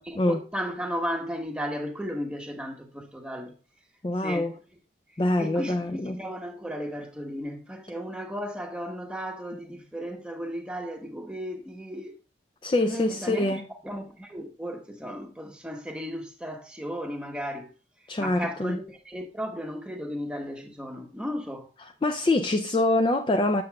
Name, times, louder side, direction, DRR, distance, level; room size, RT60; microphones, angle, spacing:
voice 1, 0.1-3.5 4.2-4.5 5.4-12.2 12.8-17.7 18.2-21.7, equal, 5° right, 0.9 m, -35 dB
voice 2, 4.0-4.5 5.2-6.2 12.6-13.7 18.1-18.8 22.0-23.6, left 2 dB, 25° left, 0.4 m, -25 dB
7.7 x 7.5 x 2.3 m
head